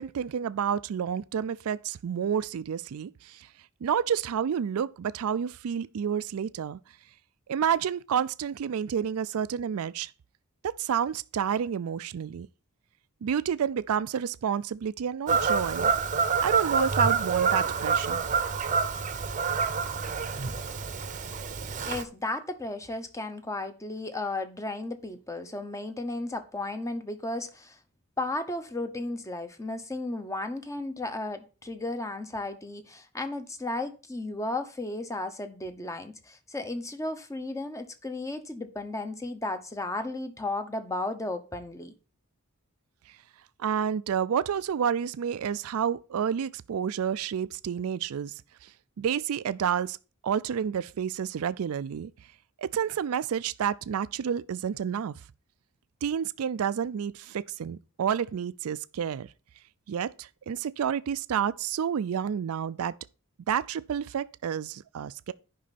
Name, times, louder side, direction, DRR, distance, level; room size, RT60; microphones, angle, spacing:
voice 1, 0.0-3.5 3.8-6.8 7.5-10.1 10.6-12.5 13.2-15.9 16.4-18.2 43.1-43.2 43.6-48.3 48.6-50.0 50.2-52.1 52.6-55.1 56.0-59.3 59.9-62.9 63.5-65.3, right 8 dB, 70° right, 0.4 m, -30 dB
Fowl / Bird vocalization bird call bird song, 15.3-22.0, right 5 dB, 35° right, 0.7 m, -27 dB
voice 2, 21.9-27.8 28.2-41.9, left 2 dB, 15° left, 0.9 m, -34 dB
10.0 x 5.5 x 4.1 m
head